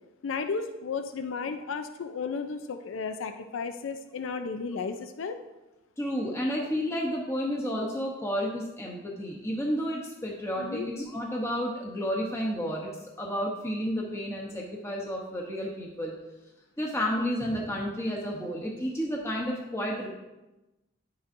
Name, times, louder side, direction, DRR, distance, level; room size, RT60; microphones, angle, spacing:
voice 1, 0.2-5.4 10.6-10.9, left 5 dB, 80° left, 8 dB, 0.5 m, -34 dB
voice 2, 6.0-16.1 16.8-20.1, equal, 15° left, -2 dB, 0.9 m, -31 dB
10.0 x 6.9 x 2.6 m, 1.0 s
head